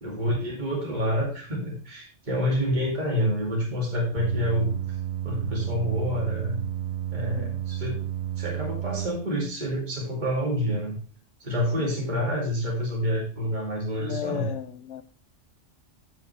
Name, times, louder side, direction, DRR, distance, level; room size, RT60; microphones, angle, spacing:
voice 1, 0.0-4.7 5.2-6.6 7.1-8.0 8.4-11.0 11.4-14.5, equal, 40° right, -3 dB, 2.5 m, -28 dB
sound 1, 4.2-9.1, right 12 dB, 60° right, 0.9 m, -31 dB
voice 2, 7.2-7.6 11.8-11.9 14.0-15.0, left 11 dB, 75° left, 10 dB, 0.9 m, -36 dB
14.0 x 5.7 x 3.3 m, 0.41 s
omnidirectional pair, 1.3 m